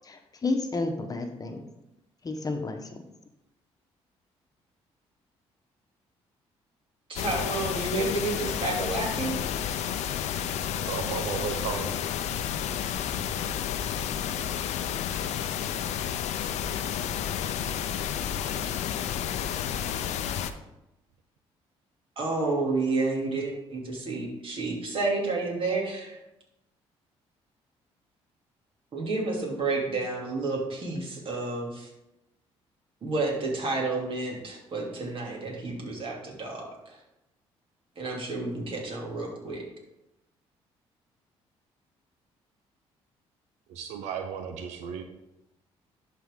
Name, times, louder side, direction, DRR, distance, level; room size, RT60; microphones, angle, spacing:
voice 1, 0.1-1.6 2.2-2.8, left 3 dB, 35° left, 5 dB, 1.1 m, -30 dB
voice 2, 7.1-9.4 22.2-26.2 28.9-31.9 33.0-37.0 38.0-39.6, right 3 dB, 50° right, -1 dB, 2.8 m, -30 dB
sound 1, 7.2-20.5, left 9 dB, 75° left, 0.6 m, -31 dB
voice 3, 10.8-12.0 43.7-45.0, right 6 dB, 85° right, 6 dB, 0.7 m, -34 dB
11.5 x 4.6 x 3.7 m, 0.92 s
cardioid pair, 80°, 12 cm